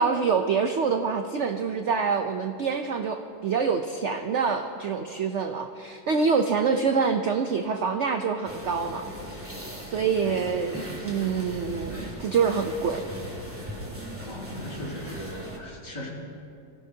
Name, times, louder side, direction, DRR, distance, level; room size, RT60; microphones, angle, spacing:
voice 1, 0.0-9.0 9.9-13.0, right 5 dB, 80° right, 6 dB, 0.6 m, -26 dB
sound 1, 8.4-15.6, right 1 dB, 5° right, 2.0 m, -38 dB
voice 2, 14.2-16.1, left 1 dB, 65° left, -4 dB, 3.4 m, -38 dB
24.5 x 16.5 x 2.8 m, 2.6 s
omnidirectional pair, 2.0 m